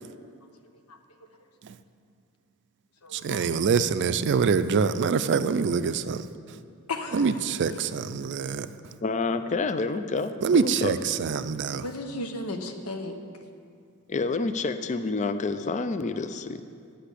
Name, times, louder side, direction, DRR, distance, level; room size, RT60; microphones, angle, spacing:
voice 1, 0.9-1.3 3.0-3.5 6.9-7.4 11.7-13.2, left 2 dB, 85° left, 1.0 m, -35 dB
voice 2, 3.1-6.6 7.1-9.0 10.4-11.9, right 5 dB, 55° right, 0.4 m, -25 dB
voice 3, 9.0-11.0 14.1-16.6, left 3 dB, 35° left, 0.4 m, -28 dB
10.0 x 5.9 x 8.3 m
head